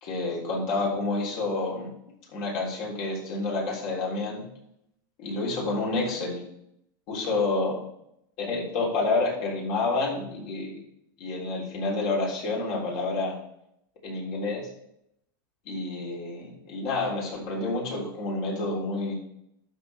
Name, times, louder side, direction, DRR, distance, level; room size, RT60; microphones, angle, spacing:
voice 1, 0.0-1.9 2.3-4.5 5.2-6.4 7.1-7.8 8.4-10.8 11.2-13.4 14.0-14.7 15.7-19.1, left 3 dB, 50° left, -2 dB, 3.6 m, -29 dB
12.0 x 6.7 x 3.5 m, 0.77 s
supercardioid pair, 150°, 12 cm